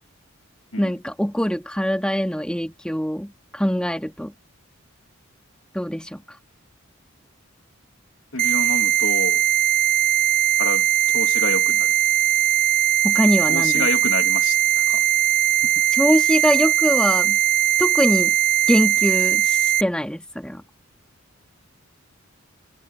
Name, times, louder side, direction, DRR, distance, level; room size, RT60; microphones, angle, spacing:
voice 1, 0.8-4.3 5.7-6.2 13.0-13.9 16.0-17.4 17.8-18.3 18.7-20.6, equal, 5° left, 2.3 m, -23 dB
voice 2, 8.3-9.4 10.6-10.9 11.1-11.9 13.5-14.6 14.9-15.0 15.6-15.8, left 3 dB, 70° left, 2.4 m, -28 dB
sound 1, 8.4-19.8, right 12 dB, 40° right, 0.4 m, -19 dB
head